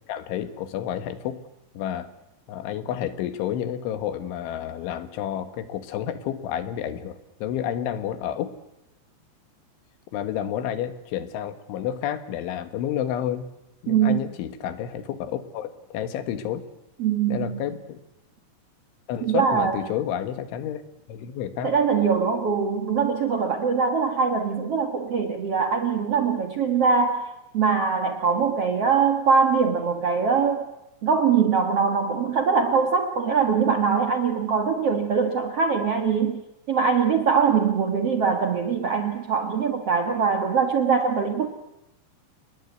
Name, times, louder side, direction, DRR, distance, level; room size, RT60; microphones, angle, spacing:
voice 1, 0.1-1.4 1.8-2.1 2.5-8.5 10.1-13.5 13.8-16.7 17.3-18.0 19.1-20.8 21.1-21.7, left 10 dB, 90° left, 10 dB, 4.0 m, -30 dB
voice 2, 13.9-14.2 17.0-17.7 19.2-19.8 21.6-30.7 31.0-36.4 36.7-41.5, right 6 dB, 65° right, 5 dB, 1.5 m, -22 dB
28.5 x 21.0 x 8.2 m, 0.89 s
omnidirectional pair, 5.3 m